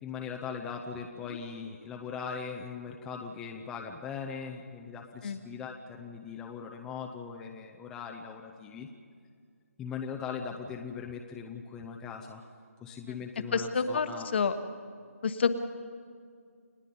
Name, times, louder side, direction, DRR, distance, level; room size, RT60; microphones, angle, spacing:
voice 1, 0.0-8.9 9.8-12.5 12.8-14.3, left 6 dB, 5° left, 1 dB, 0.6 m, -40 dB
voice 2, 13.5-14.6 15.2-15.5, left 5 dB, 45° left, 9 dB, 1.2 m, -28 dB
30.0 x 19.0 x 5.4 m, 2.2 s
figure-of-eight pair, 160°, 8 cm